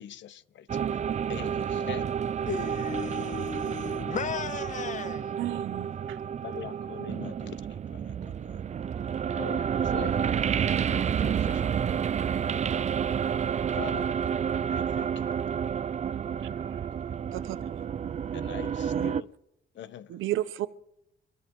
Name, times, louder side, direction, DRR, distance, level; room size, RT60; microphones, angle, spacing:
voice 1, 0.0-2.2 6.4-8.6 9.4-10.4 10.7-12.0 12.4-12.5 13.7-14.1 14.7-15.5 18.3-19.3 19.7-20.2, left 10 dB, 65° left, 1.0 m, -44 dB
sound 1, 0.7-19.2, right 8 dB, 35° right, 0.4 m, -30 dB
voice 2, 2.5-5.4, left 6 dB, 40° left, 0.6 m, -35 dB
voice 3, 5.4-6.2 17.3-17.6 18.9-19.1 20.1-20.7, right 14 dB, 85° right, 0.8 m, -32 dB
30.0 x 14.0 x 3.1 m
cardioid pair, 90°, 20 cm